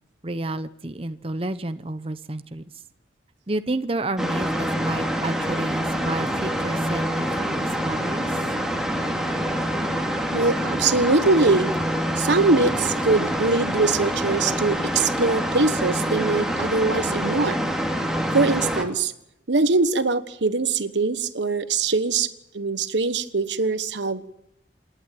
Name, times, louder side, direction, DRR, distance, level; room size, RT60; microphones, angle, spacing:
voice 1, 0.2-2.6 3.5-8.3, right 2 dB, 30° right, 10 dB, 0.8 m, -30 dB
sound 1, 4.2-18.8, equal, 5° right, 2.6 m, -26 dB
voice 2, 10.3-11.7 12.2-17.6 18.3-19.1 19.5-24.3, right 3 dB, 80° right, 13 dB, 1.2 m, -22 dB
27.5 x 11.5 x 9.2 m, 0.82 s
head